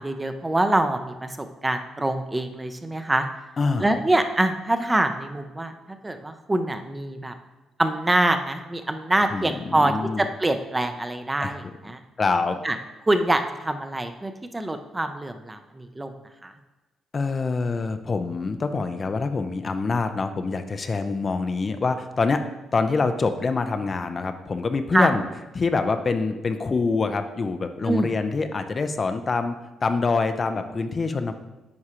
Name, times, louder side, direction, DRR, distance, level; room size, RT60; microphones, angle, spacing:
voice 1, 0.0-3.3 3.8-7.3 7.8-12.0 12.6-12.8 13.1-16.1 16.4-16.5 24.9-25.1 27.8-28.1, right 1 dB, 15° right, 7 dB, 0.6 m, -25 dB
voice 2, 3.6-3.9 9.3-10.2 11.4-11.7 12.2-12.6 17.1-22.4 22.7-25.2 25.5-29.6 29.8-31.3, left 4 dB, 35° left, 8 dB, 0.4 m, -25 dB
9.5 x 4.8 x 2.9 m, 1.1 s
cardioid pair, 90°, 0 cm